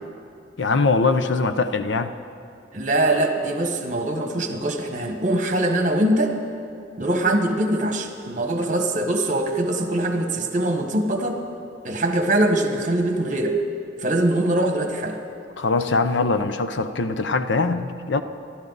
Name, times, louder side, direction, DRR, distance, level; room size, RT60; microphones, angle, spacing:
voice 1, 0.6-2.1 15.6-18.2, left 3 dB, 85° left, 10 dB, 0.7 m, -22 dB
voice 2, 2.7-6.4 7.0-11.4 11.8-13.6 14.0-15.2, right 1 dB, 45° right, 5 dB, 1.3 m, -22 dB
26.5 x 12.0 x 4.1 m, 2.5 s
head